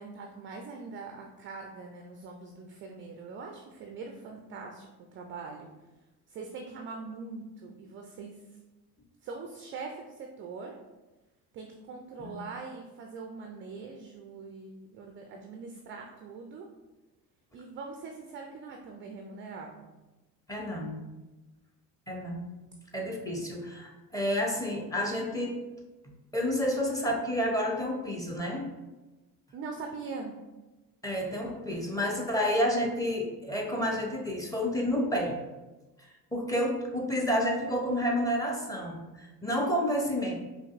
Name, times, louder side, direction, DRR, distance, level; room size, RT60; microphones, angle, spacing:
voice 1, 0.0-5.7 6.3-8.4 9.2-10.8 11.5-16.7 17.5-19.9 29.5-30.4, right 4 dB, 30° right, 2 dB, 0.3 m, -42 dB
voice 2, 20.5-21.0 22.1-22.5 22.9-25.6 26.3-28.7 31.0-35.4 36.0-40.3, equal, 5° left, 0 dB, 0.7 m, -30 dB
5.1 x 2.7 x 2.4 m, 1.1 s
hypercardioid pair, 65°, 49 cm